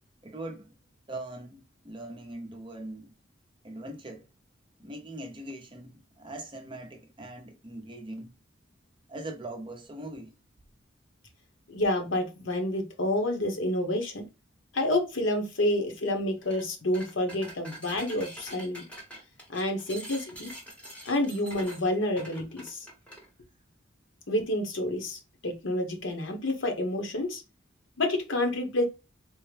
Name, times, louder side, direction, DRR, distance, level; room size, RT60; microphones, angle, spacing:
voice 1, 0.2-0.8 1.1-3.1 3.6-4.3 4.8-8.3 9.1-10.4, right 1 dB, 25° right, 0.6 m, -41 dB
voice 2, 11.7-14.3 14.7-18.8 19.5-20.5 21.1-22.9 24.3-27.4 28.0-28.8, left 1 dB, 80° left, 0.9 m, -29 dB
sound 1, 16.4-16.6 16.9-23.3, right 1 dB, 5° left, 0.9 m, -45 dB
3.6 x 2.1 x 3.2 m
head